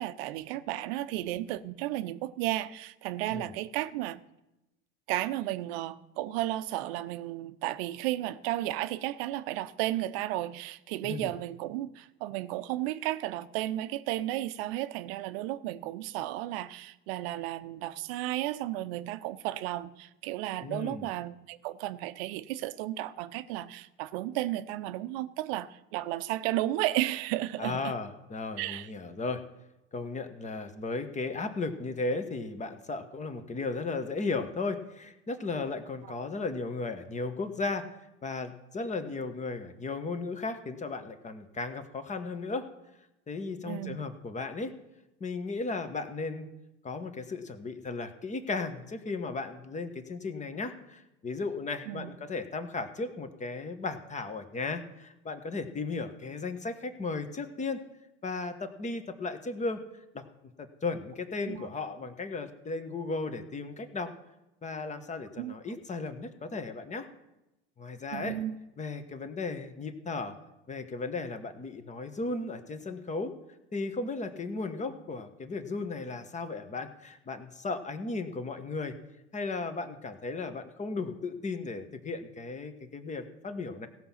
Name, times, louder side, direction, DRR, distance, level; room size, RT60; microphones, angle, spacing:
voice 1, 0.0-4.2 5.1-27.9 28.6-28.9 43.6-44.0 51.9-52.1 61.5-61.7 65.4-65.5 68.1-68.6, right 15 dB, 55° right, 0.8 m, -33 dB
voice 2, 20.6-21.1 27.6-29.4 29.9-37.9 38.2-42.7 43.3-44.7 45.2-46.5 46.8-57.8 58.2-59.8 60.1-60.2 60.6-64.1 64.6-67.1 67.8-68.4 68.8-70.4 70.7-73.3 73.7-78.9 79.3-83.9, left 3 dB, 20° left, 1.4 m, -35 dB
17.0 x 6.1 x 5.8 m
hypercardioid pair, 80°, 34 cm